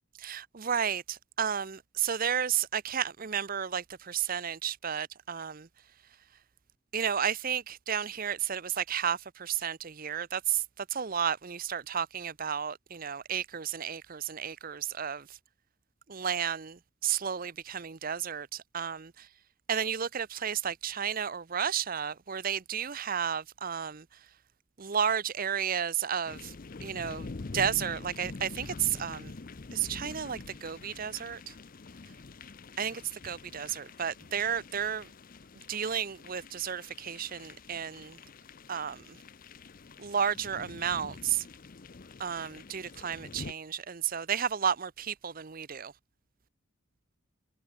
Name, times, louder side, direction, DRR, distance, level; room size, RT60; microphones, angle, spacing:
voice 1, 0.2-5.7 6.9-10.6 10.9-15.2 16.1-16.8 17.0-18.5 18.7-19.1 19.7-24.0 24.8-26.4 26.8-27.3 27.5-29.3 29.7-31.4 32.8-35.1 35.7-38.2 38.7-39.0 40.0-41.4 42.2-45.9, right 8 dB, 45° right, 0.7 m, -32 dB
sound 1, 26.3-43.5, left 3 dB, 40° left, 0.6 m, -46 dB
head